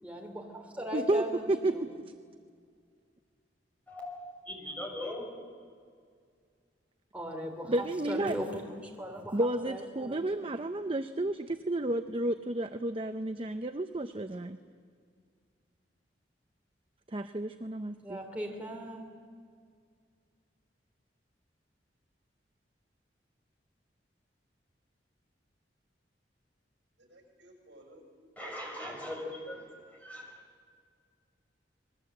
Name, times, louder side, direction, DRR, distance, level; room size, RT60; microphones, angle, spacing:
voice 1, 0.0-1.8 7.1-10.5 18.0-19.1, equal, 10° right, 0 dB, 3.1 m, -39 dB
voice 2, 0.9-1.9 7.7-8.4 9.3-14.6 17.1-18.2, right 1 dB, 30° right, 8 dB, 0.7 m, -31 dB
voice 3, 3.9-5.3 28.4-29.6 30.0-30.4, left 1 dB, 10° left, -1 dB, 5.8 m, -40 dB
voice 4, 27.0-29.6, right 1 dB, 75° right, 1 dB, 6.9 m, -55 dB
27.5 x 21.5 x 7.9 m, 2.1 s
head